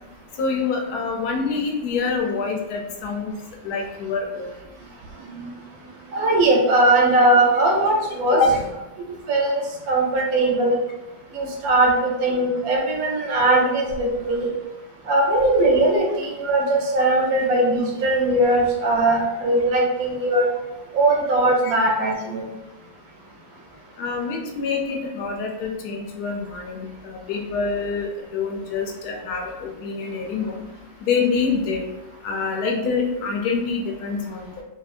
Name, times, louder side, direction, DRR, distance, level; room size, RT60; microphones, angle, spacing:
voice 1, 0.4-3.3 3.6-4.5 8.4-8.6 21.6-21.7 24.0-30.6 31.0-31.8 32.2-34.6, left 4 dB, 90° left, 1 dB, 1.1 m, -26 dB
voice 2, 6.1-8.4 9.3-10.8 11.3-14.5 15.1-20.5 20.9-22.5, right 2 dB, 75° right, -1 dB, 1.1 m, -20 dB
2.7 x 2.7 x 2.4 m, 1.0 s
omnidirectional pair, 1.6 m